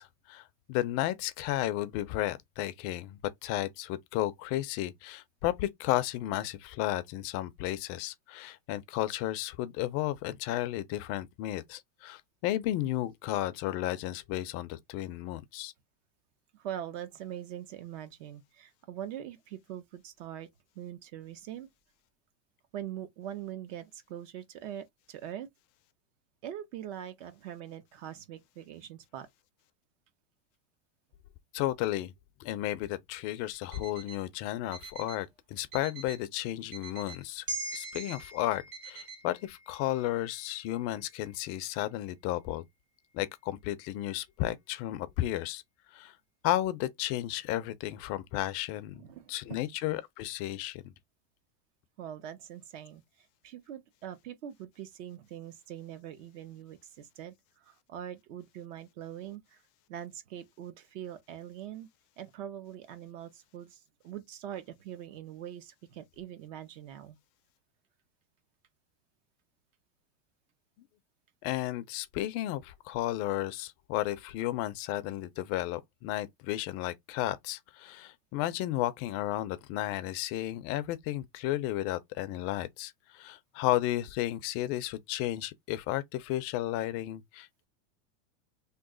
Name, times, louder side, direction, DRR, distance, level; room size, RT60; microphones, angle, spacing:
voice 1, 0.0-15.7 31.5-32.1 32.4-37.5 37.7-42.6 43.1-45.6 45.9-46.1 46.4-50.8 71.4-87.7, left 14 dB, 40° left, 0.4 m, -33 dB
voice 2, 16.5-20.5 20.7-21.7 22.7-25.5 26.4-29.3 48.9-49.7 52.0-53.0 53.4-57.3 57.6-59.6 59.9-61.9 62.2-67.2, right 10 dB, 65° right, 0.9 m, -43 dB
Alarm, 33.5-34.2 34.7-35.2 35.7-36.2 36.7-37.2 37.7-38.2 38.7-39.2, right 5 dB, 80° right, 1.8 m, -47 dB
sound 1, 37.5-42.0 42.4-42.5, right 2 dB, 10° right, 0.5 m, -43 dB
3.0 x 2.1 x 3.7 m
supercardioid pair, 135°, 41 cm